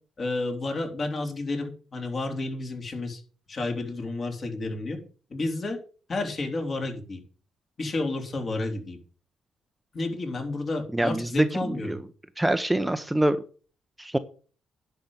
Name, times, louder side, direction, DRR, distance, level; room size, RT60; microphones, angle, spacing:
voice 1, 0.2-3.2 3.5-5.0 5.3-5.8 6.1-7.2 7.8-9.0 9.9-12.0, left 2 dB, 45° left, 3 dB, 3.6 m, -31 dB
voice 2, 10.9-12.0 12.4-13.4 14.0-14.2, right 1 dB, 10° right, 10 dB, 0.8 m, -25 dB
10.5 x 5.7 x 7.8 m, 0.40 s
cardioid pair, 90°, 0 cm